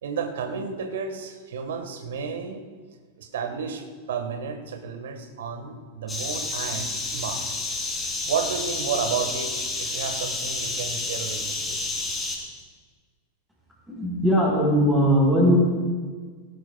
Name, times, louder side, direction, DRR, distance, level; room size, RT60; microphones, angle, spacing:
voice 1, 0.0-2.6 3.2-7.6 8.3-11.9, right 6 dB, 60° right, 6 dB, 1.5 m, -32 dB
sound 1, 6.1-12.4, left 2 dB, 15° left, 3.4 m, -30 dB
voice 2, 13.9-15.6, equal, 10° right, -7 dB, 4.6 m, -19 dB
19.5 x 17.0 x 2.3 m, 1.5 s
figure-of-eight pair, 90°, 0 cm